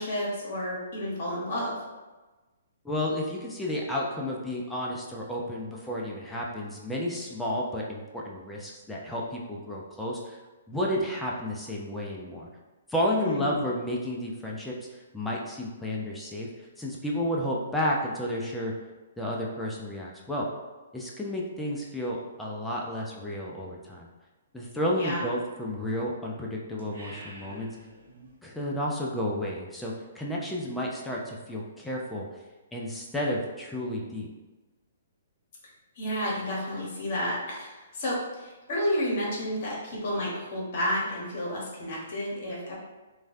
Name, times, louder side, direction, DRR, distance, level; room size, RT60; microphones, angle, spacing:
voice 1, 0.0-1.8 13.1-13.6 24.9-25.3 36.0-42.7, equal, 50° left, -3 dB, 1.1 m, -31 dB
voice 2, 2.8-10.4 10.7-12.5 12.9-14.8 15.1-16.5 16.8-18.7 19.2-20.5 20.9-24.1 24.5-27.7 28.4-32.3 32.7-34.3, left 1 dB, 5° left, -3 dB, 0.5 m, -31 dB
sound 1, 26.8-28.4, right 1 dB, 65° right, 1.0 m, -47 dB
3.1 x 2.3 x 2.6 m, 1.2 s
hypercardioid pair, 130°, 0 cm